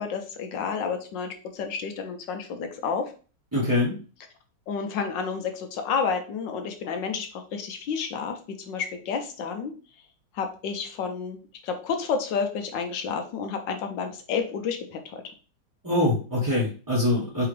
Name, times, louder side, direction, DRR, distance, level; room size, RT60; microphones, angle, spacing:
voice 1, 0.0-3.1 4.7-9.7 10.3-15.3, left 6 dB, 70° left, 5 dB, 1.2 m, -30 dB
voice 2, 3.5-3.9 15.8-17.4, left 1 dB, 15° right, -7 dB, 0.8 m, -24 dB
4.7 x 3.4 x 3.3 m, 0.37 s
omnidirectional pair, 2.4 m